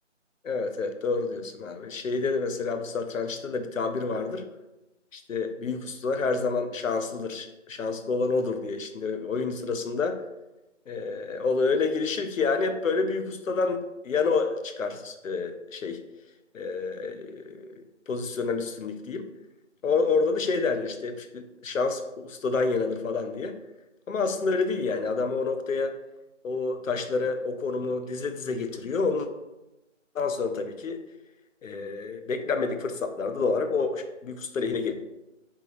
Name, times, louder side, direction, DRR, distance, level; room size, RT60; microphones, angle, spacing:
voice 1, 0.4-4.4 5.1-10.2 10.9-16.0 16.5-17.8 18.1-19.3 19.8-23.5 24.1-25.9 26.4-29.3 30.1-31.0 31.6-34.9, left 4 dB, 90° left, 7 dB, 0.6 m, -28 dB
3.5 x 2.8 x 3.2 m, 0.99 s
figure-of-eight pair, 175°, 38 cm